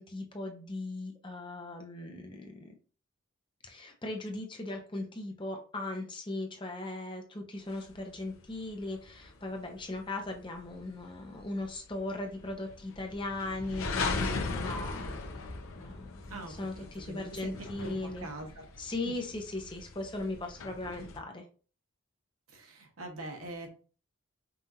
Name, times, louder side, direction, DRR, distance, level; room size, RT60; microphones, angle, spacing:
voice 1, 0.0-2.7 3.6-15.5 15.8-18.3 18.8-21.4, left 2 dB, 20° left, 3 dB, 0.6 m, -38 dB
sound 1, 7.8-21.2, left 3 dB, 75° left, 0.7 m, -39 dB
voice 2, 16.3-18.7 22.5-23.7, right 2 dB, 90° right, 3 dB, 1.1 m, -43 dB
5.4 x 2.5 x 2.7 m, 0.38 s
head